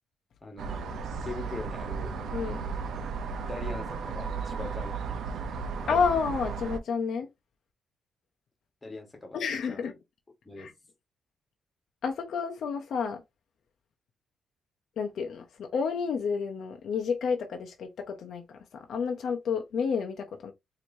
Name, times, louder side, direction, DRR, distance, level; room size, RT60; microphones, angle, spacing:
voice 1, 0.4-0.8 1.2-2.1 3.4-5.8 8.8-9.8 10.4-10.7, left 3 dB, 20° left, 1.5 m, -42 dB
sound 1, 0.6-6.8, right 5 dB, 70° right, 0.7 m, -34 dB
voice 2, 2.3-2.7 5.9-7.3 9.3-9.9 10.6-10.7 12.0-13.2 15.0-20.5, left 6 dB, 65° left, 0.7 m, -30 dB
4.6 x 2.9 x 2.7 m
cardioid pair, 135°, 0 cm